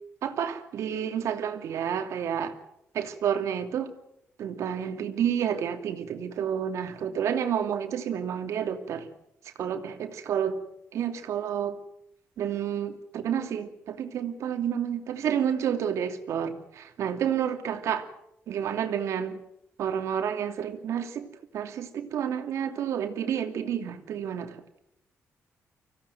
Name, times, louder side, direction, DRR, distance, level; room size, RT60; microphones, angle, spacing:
voice 1, 0.2-2.6 2.9-3.9 4.4-9.1 9.6-10.6 10.9-11.8 12.4-18.1 18.5-19.4 19.8-24.6, right 8 dB, 70° right, 6 dB, 2.6 m, -30 dB
25.0 x 16.5 x 9.3 m, 0.78 s
wide cardioid pair, 170°, 5 cm